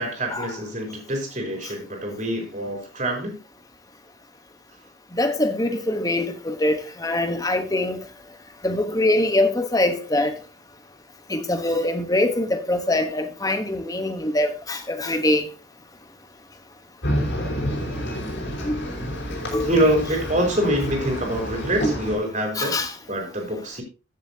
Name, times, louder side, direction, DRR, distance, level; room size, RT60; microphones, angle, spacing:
voice 1, 0.0-3.4 19.6-22.8 23.1-23.8, right 1 dB, 40° right, 3.7 m, -25 dB
voice 2, 5.1-8.0 8.6-10.3 11.3-15.5 18.6-18.8 19.5-19.7 22.5-22.9, left 1 dB, 20° left, 1.1 m, -23 dB
sound 1, 17.0-22.2, equal, 80° left, 5.2 m, -28 dB
15.0 x 7.1 x 2.8 m
head